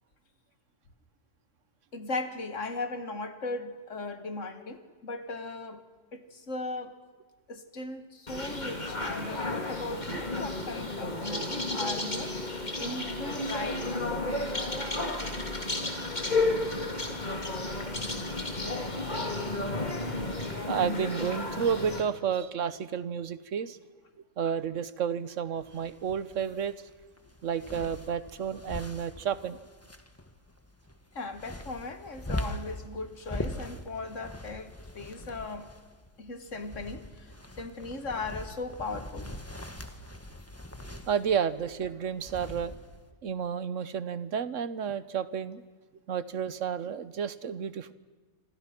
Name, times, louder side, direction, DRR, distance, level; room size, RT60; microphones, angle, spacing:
voice 1, 1.9-5.8 6.1-7.0 7.5-14.1 31.1-35.7 36.2-39.4, left 3 dB, 85° left, 9 dB, 2.1 m, -38 dB
sound 1, 8.3-22.0, left 2 dB, 35° left, 3.0 m, -32 dB
voice 2, 20.7-23.8 24.4-26.7 27.4-29.6 40.8-42.7 43.2-45.6 46.1-47.9, right 7 dB, 85° right, 15 dB, 1.3 m, -31 dB
sound 2, 25.6-43.1, left 1 dB, 10° left, 1.3 m, -42 dB
27.0 x 26.0 x 6.0 m, 1.4 s
omnidirectional pair, 1.3 m